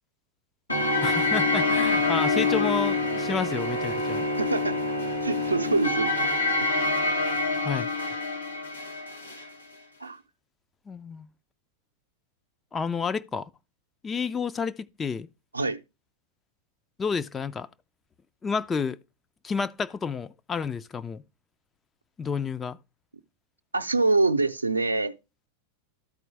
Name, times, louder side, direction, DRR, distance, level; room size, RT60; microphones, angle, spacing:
sound 1, 0.7-9.5, left 3 dB, 80° left, 1.5 m, -26 dB
voice 1, 1.0-4.2 7.6-7.9 10.9-11.3 12.7-13.5 14.0-15.3 17.0-17.7 18.4-19.0 19.4-21.2 22.2-22.8, left 5 dB, 20° left, 0.4 m, -30 dB
voice 2, 4.4-4.8 5.2-6.3 6.6-6.7 10.0-10.2 15.5-15.8 23.7-25.2, right 3 dB, 80° right, 0.6 m, -25 dB
13.5 x 4.5 x 3.3 m
figure-of-eight pair, 90°, 0 cm